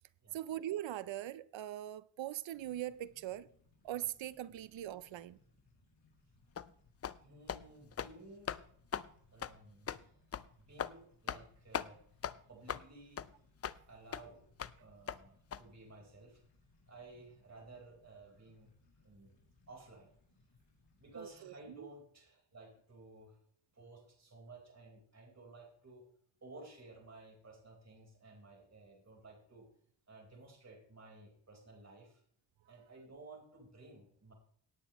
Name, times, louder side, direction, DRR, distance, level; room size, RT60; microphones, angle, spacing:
voice 1, 0.3-3.5 3.8-5.4 21.2-21.9, right 12 dB, 90° right, 0.7 m, -41 dB
sound 1, 2.5-21.4, left 2 dB, 70° left, 5.3 m, -69 dB
sound 2, 6.6-6.7 7.0-7.2 7.5-7.6 7.9-8.1 8.5-8.6 8.9-9.1 9.4-9.5 9.9-10.0 10.3-10.5 10.8-10.9 11.3-11.5 11.7-11.9 12.2-12.3 12.7-12.8 13.2-13.3 13.6-13.8 14.1-14.2 14.6-14.7 15.1-15.2 15.5-15.6, left 8 dB, 35° left, 0.4 m, -39 dB
voice 2, 7.2-8.6 9.3-10.2 10.6-12.0 12.5-13.3 13.5-14.5 14.8-16.4 16.9-18.7 19.0-20.1 21.0-23.4 23.7-26.1 26.4-29.7 30.1-32.2 32.7-34.3, right 2 dB, 35° right, 4.3 m, -55 dB
18.0 x 9.0 x 3.0 m
cardioid pair, 95°, 44 cm